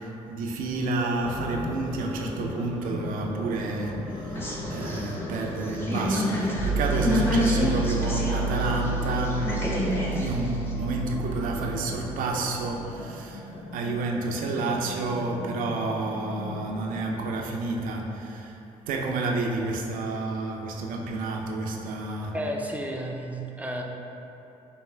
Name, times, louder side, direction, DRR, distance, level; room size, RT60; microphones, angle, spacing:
voice 1, 0.0-4.4 4.7-9.6 10.1-18.6 18.9-22.4, right 2 dB, 70° right, 0 dB, 0.5 m, -30 dB
sound 1, 1.2-17.2, left 1 dB, 40° left, 0.6 m, -38 dB
sound 2, 4.3-8.5 8.9-10.7, left 1 dB, 15° left, 0.8 m, -28 dB
sound 3, 6.6-12.7, right 4 dB, 90° right, 0.9 m, -30 dB
voice 2, 22.3-23.8, right 1 dB, 10° right, 0 dB, 0.5 m, -32 dB
5.4 x 2.1 x 3.3 m, 3.0 s
supercardioid pair, 65°, 14 cm